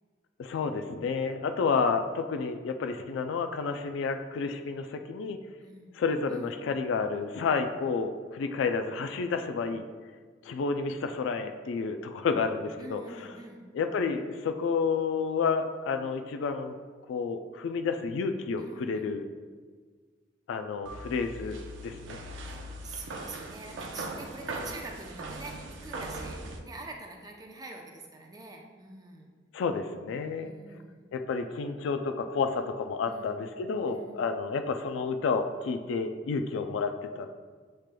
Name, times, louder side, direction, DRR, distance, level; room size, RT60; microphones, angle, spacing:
voice 1, 0.4-5.4 5.9-9.8 10.4-13.0 13.7-16.8 17.1-19.2 20.5-22.2 29.5-30.5 31.1-37.4, left 5 dB, 90° left, 7 dB, 0.3 m, -30 dB
voice 2, 5.6-6.0 6.3-6.5 12.8-13.7 18.6-19.2 22.4-29.3 30.4-31.1 33.0-33.3 33.9-34.2, right 2 dB, 20° right, 1 dB, 0.5 m, -45 dB
sound 1, 20.9-26.6, right 2 dB, 80° right, 0.5 m, -40 dB
7.3 x 3.3 x 2.2 m, 1.5 s
head